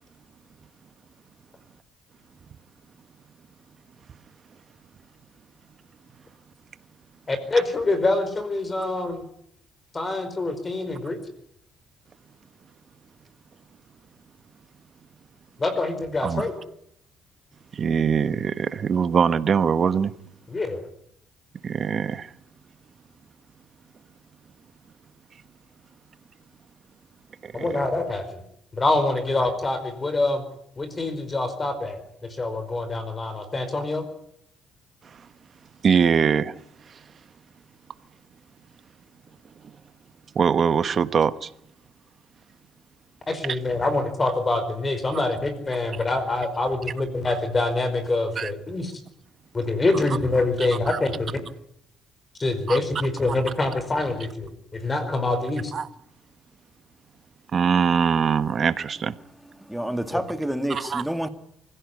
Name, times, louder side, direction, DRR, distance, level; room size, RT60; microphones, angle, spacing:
voice 1, 7.3-9.2 9.9-11.2 15.6-16.5 20.5-20.9 27.5-28.4 28.7-30.4 30.8-34.1 43.3-48.9 49.5-51.4 52.4-55.7 60.1-60.2, left 2 dB, 25° left, 4.9 m, -25 dB
voice 2, 17.7-20.1 21.6-22.3 27.4-27.7 35.8-36.6 40.3-41.5 48.4-48.5 50.9-51.0 52.7-52.8 55.7-55.9 57.5-59.1 60.7-61.0, right 6 dB, 45° right, 1.3 m, -22 dB
voice 3, 59.6-61.3, right 1 dB, 5° right, 2.3 m, -28 dB
24.5 x 16.5 x 9.8 m
cardioid pair, 100°, 0 cm